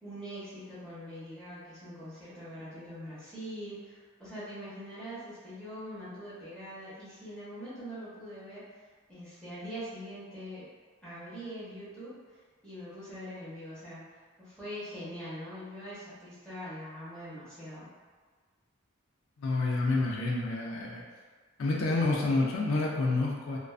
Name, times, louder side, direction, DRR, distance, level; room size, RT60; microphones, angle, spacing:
voice 1, 0.0-8.6 9.1-10.7 11.0-17.9, equal, 5° left, -12 dB, 0.8 m, -43 dB
voice 2, 19.4-21.0 21.6-23.6, left 2 dB, 75° left, -3 dB, 0.4 m, -28 dB
2.4 x 2.2 x 2.3 m, 1.5 s
head